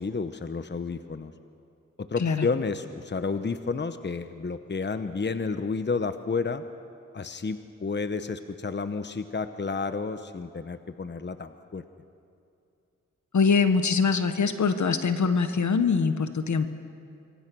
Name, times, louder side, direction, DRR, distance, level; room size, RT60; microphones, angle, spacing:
voice 1, 0.0-1.3 2.0-6.6 7.1-11.8, left 4 dB, 35° left, 10 dB, 1.0 m, -31 dB
voice 2, 13.3-16.7, left 5 dB, 70° left, 9 dB, 1.4 m, -23 dB
26.5 x 23.0 x 6.3 m, 2.5 s
cardioid pair, 60°, 30 cm